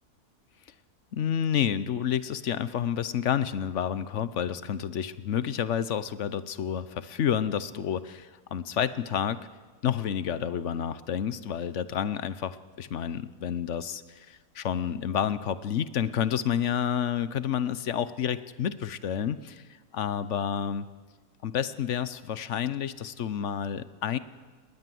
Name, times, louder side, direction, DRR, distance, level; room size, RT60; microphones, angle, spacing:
voice 1, 1.1-9.5 9.8-19.6 19.9-20.9 21.4-24.2, left 9 dB, 55° left, 15 dB, 1.0 m, -29 dB
20.5 x 19.0 x 7.7 m, 1.4 s
omnidirectional pair, 1.6 m